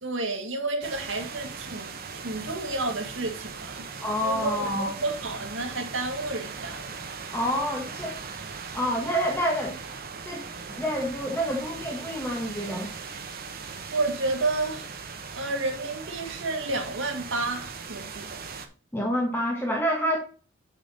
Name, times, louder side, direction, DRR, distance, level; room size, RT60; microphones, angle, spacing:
voice 1, 0.0-3.9 4.2-6.9 13.9-14.9 15.3-18.4, right 2 dB, 75° right, 1.8 m, -31 dB
sound 1, 0.8-18.7, right 5 dB, 50° right, 1.1 m, -39 dB
voice 2, 4.0-4.9 7.3-8.3 8.7-9.8 10.3-12.9 18.9-20.2, equal, 10° left, 1.3 m, -28 dB
7.2 x 6.8 x 4.1 m
head